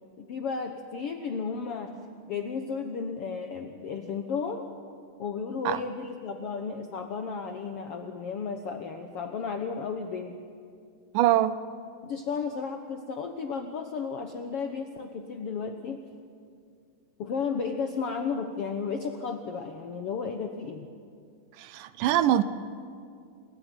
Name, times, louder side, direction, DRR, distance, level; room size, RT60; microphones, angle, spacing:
voice 1, 0.2-1.9 2.3-4.7 5.2-10.4 12.0-16.0 17.2-20.9, left 5 dB, 70° left, 1.4 m, -33 dB
voice 2, 11.1-11.6 21.6-22.4, right 12 dB, 75° right, 2.2 m, -23 dB
27.0 x 14.5 x 9.6 m
omnidirectional pair, 4.0 m